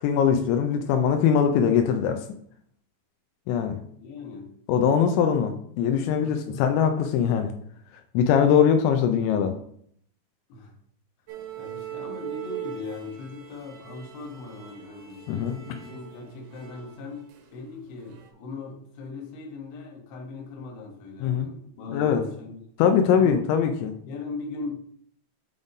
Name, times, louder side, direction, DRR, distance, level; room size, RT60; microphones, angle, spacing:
voice 1, 0.0-2.3 3.5-3.8 4.7-7.5 8.1-9.5 15.3-15.6 21.2-21.5 21.9-22.2 22.8-23.9, left 7 dB, 90° left, 5 dB, 2.6 m, -22 dB
voice 2, 4.0-4.5 6.2-6.7 10.5-10.7 11.6-23.4 24.1-24.7, left 4 dB, 70° left, 1 dB, 2.5 m, -39 dB
sound 1, 11.3-17.7 18.0-18.3, right 11 dB, 75° right, 2.9 m, -41 dB
8.0 x 3.6 x 3.9 m, 0.64 s
omnidirectional pair, 5.9 m